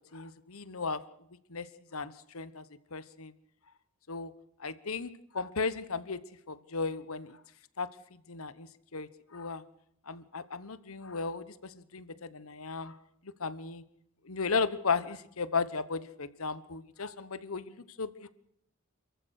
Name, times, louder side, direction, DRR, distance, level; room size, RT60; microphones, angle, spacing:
voice 1, 0.1-1.0 1.5-2.6 2.9-3.3 4.1-4.3 4.6-6.2 6.5-7.4 7.8-7.9 8.3-9.6 10.1-13.0 13.4-13.8 14.2-18.3, left 4 dB, 85° left, 15 dB, 1.1 m, -35 dB
28.0 x 14.5 x 6.5 m, 0.74 s
head